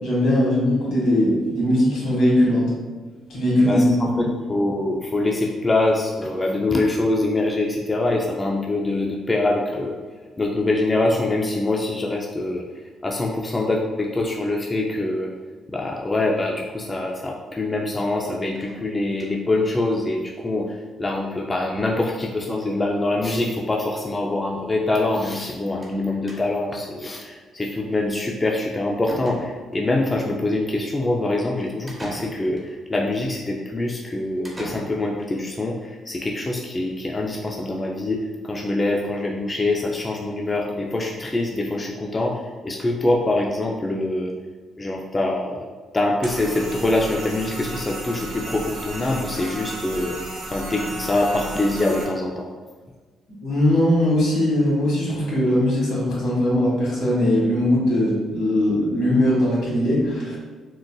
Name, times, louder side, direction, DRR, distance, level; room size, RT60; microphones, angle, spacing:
voice 1, 0.0-2.7 3.3-4.3 53.4-60.4, left 1 dB, 75° left, -6 dB, 1.4 m, -20 dB
voice 2, 3.7-10.0 10.4-12.7 13.0-15.3 15.7-44.3 44.8-45.7 45.9-50.2 50.5-52.5, left 2 dB, 25° left, -1 dB, 0.3 m, -24 dB
sound 1, 18.6-19.6 19.9-20.0 20.3-20.4 20.6-20.7 21.9-22.1 22.4-22.7 23.6-23.7 24.0-24.1 25.8-26.0 26.3-26.8 28.5-28.6 29.1-29.9 31.9-32.7 34.4-35.3, right 1 dB, 15° right, 0.8 m, -40 dB
sound 2, 46.2-52.0, right 2 dB, 80° right, 1.1 m, -34 dB
3.7 x 2.5 x 2.2 m, 1.4 s
cardioid pair, 90°, 0 cm